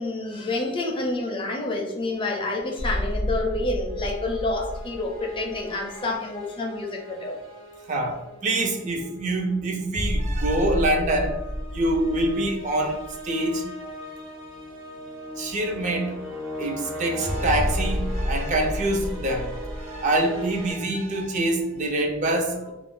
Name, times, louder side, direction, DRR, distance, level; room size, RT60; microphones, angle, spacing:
voice 1, 0.0-7.4, left 2 dB, 25° left, 1 dB, 0.4 m, -28 dB
sound 1, 2.8-20.7, equal, 75° right, 0.7 m, -32 dB
voice 2, 7.9-11.4 11.7-13.6 15.4-16.2 16.6-19.5 19.8-22.7, right 1 dB, 40° right, 3 dB, 0.4 m, -25 dB
2.4 x 2.2 x 3.5 m, 1.0 s
head